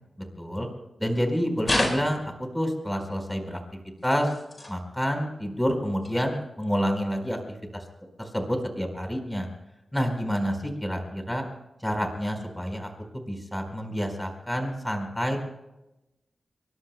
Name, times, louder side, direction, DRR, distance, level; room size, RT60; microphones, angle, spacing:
voice 1, 0.4-0.7 1.0-3.6 4.0-4.3 4.7-7.8 8.2-9.5 9.9-11.5 11.8-12.9 13.1-15.4, equal, 5° left, 4 dB, 4.4 m, -28 dB
sound 1, 1.6-2.5 4.0-4.7 6.0-6.2 7.0-7.1, left 1 dB, 30° left, 4.7 m, -29 dB
26.0 x 23.0 x 2.2 m, 0.95 s
wide cardioid pair, 100°, 0 cm